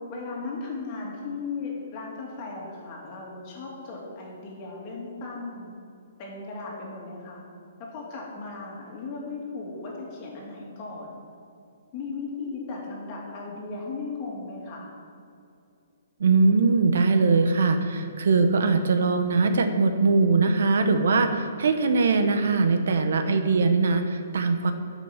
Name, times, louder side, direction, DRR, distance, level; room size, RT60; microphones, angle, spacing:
voice 1, 0.0-5.7 6.2-7.4 7.8-11.2 11.9-14.9, left 3 dB, 25° left, -3 dB, 2.4 m, -36 dB
voice 2, 16.2-24.7, right 4 dB, 70° right, 7 dB, 0.9 m, -21 dB
9.9 x 6.0 x 7.2 m, 2.5 s
hypercardioid pair, 170°, 0 cm